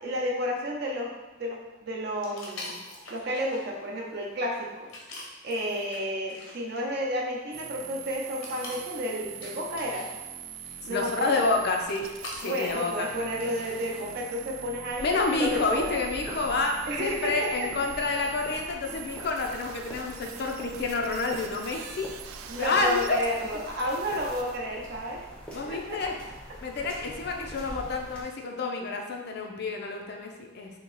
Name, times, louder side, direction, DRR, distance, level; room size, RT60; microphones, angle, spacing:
voice 1, 0.0-1.1 1.4-2.8 3.1-4.9 5.4-10.1 10.8-11.5 12.4-16.0 16.9-17.7 18.9-19.0 22.5-25.2 25.6-26.0, equal, 55° right, -1 dB, 0.7 m, -31 dB
sound 1, 2.2-13.9, left 2 dB, 70° left, 0.8 m, -46 dB
sound 2, 7.5-24.6, right 10 dB, 90° right, 0.3 m, -43 dB
voice 2, 10.9-12.0 12.4-13.1 15.0-22.1 22.6-23.2 25.5-26.2 26.6-30.7, left 3 dB, 55° left, 2 dB, 0.5 m, -29 dB
sound 3, 14.9-28.2, equal, 5° left, 0.6 m, -44 dB
2.9 x 2.8 x 3.9 m, 1.1 s
head